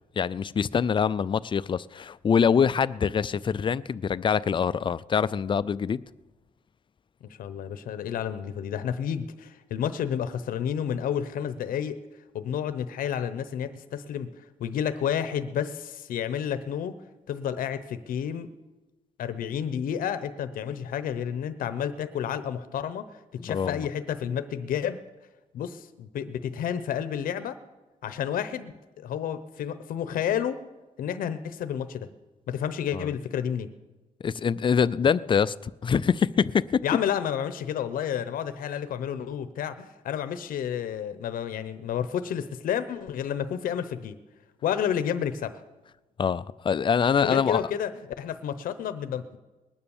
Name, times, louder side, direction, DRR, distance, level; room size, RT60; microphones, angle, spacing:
voice 1, 0.2-6.0 23.4-23.9 32.9-33.1 34.2-36.8 46.2-47.7, left 6 dB, 35° left, 0.4 m, -24 dB
voice 2, 7.4-12.0 12.3-14.3 14.6-16.9 17.3-18.5 19.2-25.0 25.5-27.6 28.0-30.6 31.0-32.1 32.5-33.7 36.8-44.1 44.6-45.6 47.2-47.9 48.2-49.4, left 9 dB, 90° left, 0.8 m, -30 dB
20.0 x 9.8 x 7.2 m
cardioid pair, 105°, 14 cm